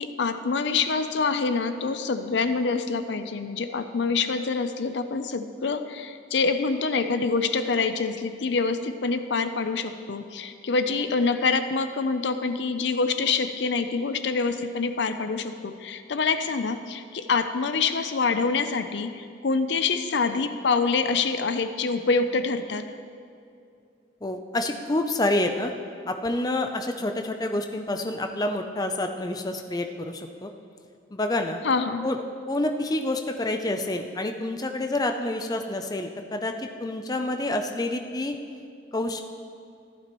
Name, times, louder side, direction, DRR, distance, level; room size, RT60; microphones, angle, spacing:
voice 1, 0.0-22.8 31.6-32.1, left 4 dB, 70° left, 9 dB, 0.5 m, -26 dB
voice 2, 24.2-25.7 26.1-30.5 31.1-31.6 32.0-32.2 32.5-38.4 38.9-39.2, left 1 dB, 20° left, 5 dB, 0.5 m, -28 dB
14.5 x 12.0 x 3.1 m, 2.4 s
head